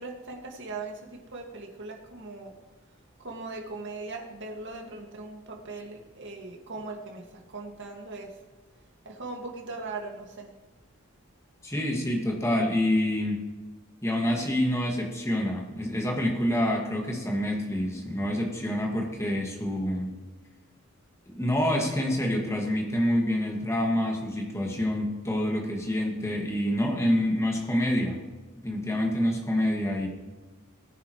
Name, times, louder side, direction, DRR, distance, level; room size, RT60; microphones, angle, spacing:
voice 1, 0.0-2.5 2.9-8.4 9.0-10.5, right 3 dB, 55° right, 1 dB, 2.1 m, -39 dB
voice 2, 11.6-13.5 14.0-20.1 21.3-28.2 28.6-30.1, left 1 dB, 15° left, 0 dB, 2.0 m, -27 dB
18.0 x 9.7 x 3.2 m, 1.3 s
head